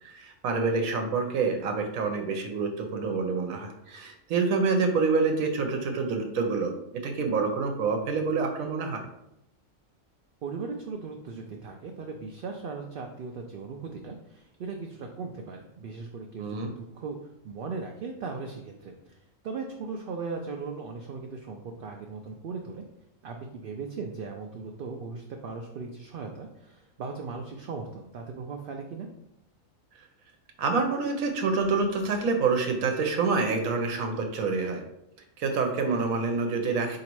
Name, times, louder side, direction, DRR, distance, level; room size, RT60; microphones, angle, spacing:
voice 1, 0.0-9.0 16.4-16.7 30.6-34.8 35.4-37.0, right 4 dB, 90° right, 4 dB, 1.2 m, -27 dB
voice 2, 10.4-17.2 17.4-22.8 23.2-29.1, right 4 dB, 65° right, 2 dB, 0.5 m, -38 dB
4.0 x 2.8 x 4.5 m, 0.83 s
omnidirectional pair, 1.4 m